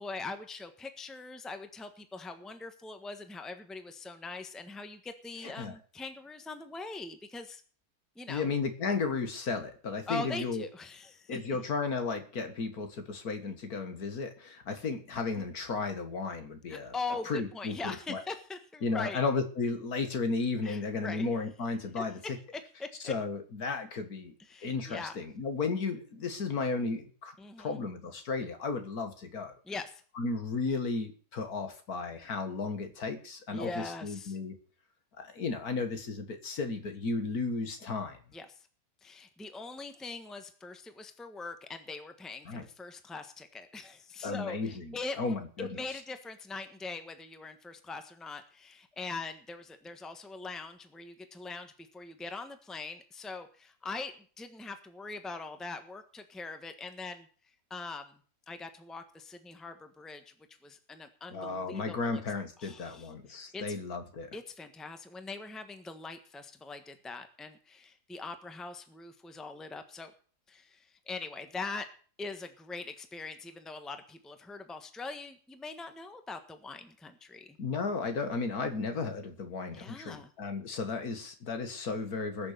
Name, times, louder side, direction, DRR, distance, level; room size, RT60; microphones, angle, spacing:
voice 1, 0.0-7.6 8.1-8.5 10.1-11.4 15.3-15.4 16.7-19.2 20.6-21.3 21.9-22.0 22.8-23.1 24.4-25.2 27.4-27.8 29.6-30.0 33.5-34.4 38.3-38.7 39.0-57.3 57.7-58.2 58.5-60.2 60.6-62.2 62.6-63.1 63.5-63.8 64.3-70.1 70.5-71.9 72.2-77.6 79.7-80.3, left 3 dB, ahead, 8 dB, 1.2 m, -42 dB
voice 2, 5.4-5.7 8.3-10.7 11.3-17.0 17.3-18.2 18.8-22.2 23.0-24.3 24.6-27.3 27.6-29.5 30.2-34.6 35.2-38.2 42.5-42.6 44.2-46.0 61.3-64.3 77.6-82.5, left 4 dB, 65° left, 7 dB, 2.1 m, -34 dB
20.5 x 6.8 x 6.7 m, 0.43 s
omnidirectional pair, 1.7 m